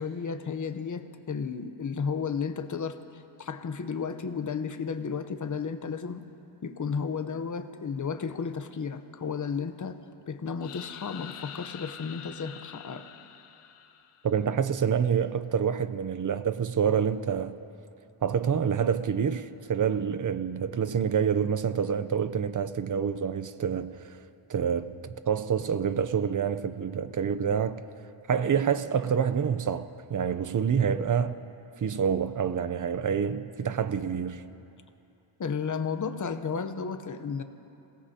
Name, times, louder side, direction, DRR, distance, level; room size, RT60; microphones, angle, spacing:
voice 1, 0.0-6.2 6.6-10.0 10.3-13.1 35.4-37.4, left 5 dB, 35° left, 0.8 m, -33 dB
sound 1, 10.6-14.4, left 9 dB, 90° left, 0.8 m, -45 dB
voice 2, 14.2-17.6 18.2-24.2 24.5-24.9 25.3-27.8 28.3-31.4 31.8-34.4, right 7 dB, 40° right, 0.6 m, -27 dB
27.0 x 18.0 x 2.8 m
wide cardioid pair, 110°, 50 cm